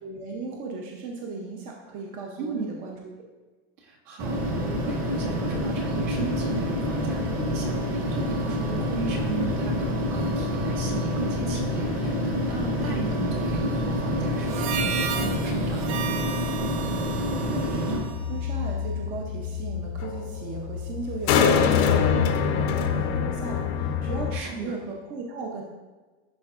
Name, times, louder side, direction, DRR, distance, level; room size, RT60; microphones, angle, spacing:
voice 1, 0.0-3.0 17.4-25.6, right 4 dB, 25° right, 0 dB, 0.6 m, -37 dB
voice 2, 3.8-16.2 24.3-24.8, right 3 dB, 65° right, -3 dB, 1.9 m, -36 dB
sound 1, 4.2-18.0, equal, 40° right, 1.7 m, -27 dB
Harmonica, 14.4-19.0, right 8 dB, 90° right, 0.6 m, -34 dB
sound 2, 16.7-24.4, left 7 dB, 45° left, 0.6 m, -25 dB
11.0 x 4.4 x 2.4 m, 1.3 s
supercardioid pair, 170°, 32 cm